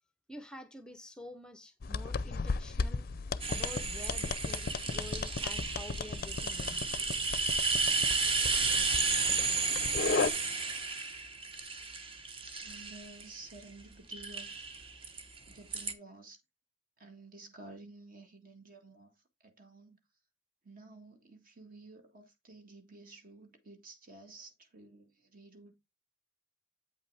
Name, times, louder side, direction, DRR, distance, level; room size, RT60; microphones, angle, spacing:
voice 1, 0.3-3.1 3.5-6.8, left 1 dB, 5° left, 0.6 m, -48 dB
sound 1, 1.8-10.3, left 4 dB, 50° left, 0.5 m, -35 dB
sound 2, 3.4-13.6 14.1-15.9, right 4 dB, 30° right, 0.8 m, -33 dB
voice 2, 12.6-14.9 15.5-16.4 17.0-19.1 19.4-20.0 20.6-25.7, right 3 dB, 50° right, 1.7 m, -52 dB
8.5 x 5.5 x 3.3 m
head